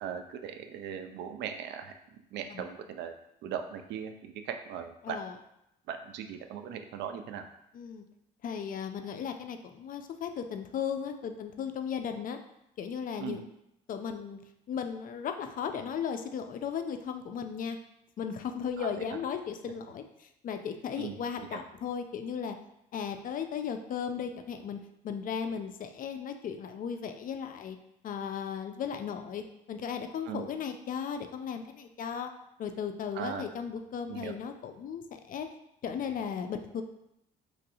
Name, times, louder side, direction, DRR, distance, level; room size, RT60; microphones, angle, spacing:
voice 1, 0.0-1.9 2.3-3.1 3.4-5.2 5.9-7.4 13.2-13.4 18.8-19.2 21.0-21.2 21.5-21.6 30.3-30.5 33.2-33.5 34.1-34.3, right 8 dB, 65° right, 7 dB, 0.4 m, -39 dB
voice 2, 5.0-5.3 7.7-8.1 8.4-12.4 12.8-13.4 13.9-14.4 14.7-17.8 18.2-22.6 22.9-27.8 28.0-32.3 32.6-35.5 35.8-36.8, left 7 dB, 45° left, 6 dB, 0.4 m, -36 dB
3.1 x 2.6 x 2.7 m, 0.82 s
supercardioid pair, 60°, 19 cm